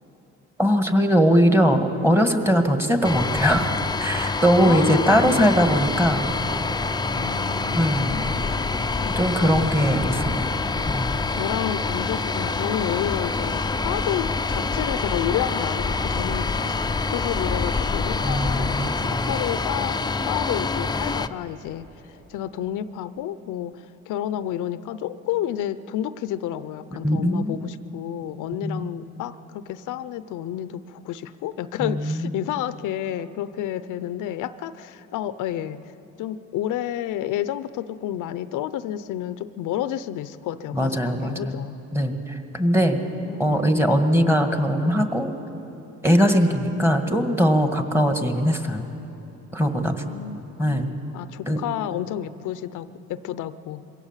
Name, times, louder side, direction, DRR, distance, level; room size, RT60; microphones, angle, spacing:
voice 1, 0.6-3.7 4.0-6.3 7.7-8.2 9.2-10.5 10.9-11.2 18.2-19.0 26.9-27.6 28.6-28.9 31.8-32.3 40.7-41.6 41.9-43.0 43.4-45.3 46.0-48.9 49.5-50.0 50.6-50.9 51.5-51.6, equal, 10° right, 6 dB, 1.7 m, -21 dB
sound 1, 3.0-21.3, left 4 dB, 15° left, 0.5 m, -26 dB
voice 2, 4.6-5.6 7.1-9.6 11.3-16.8 17.1-20.0 20.3-21.9 22.3-35.9 36.2-41.8 42.8-43.6 46.4-46.5 50.0-50.8 51.1-53.8, left 11 dB, 85° left, 14 dB, 0.6 m, -30 dB
sound 2, 5.5-23.5, right 2 dB, 30° right, 1.8 m, -42 dB
22.0 x 17.0 x 7.3 m, 3.0 s
cardioid pair, 90°, 30 cm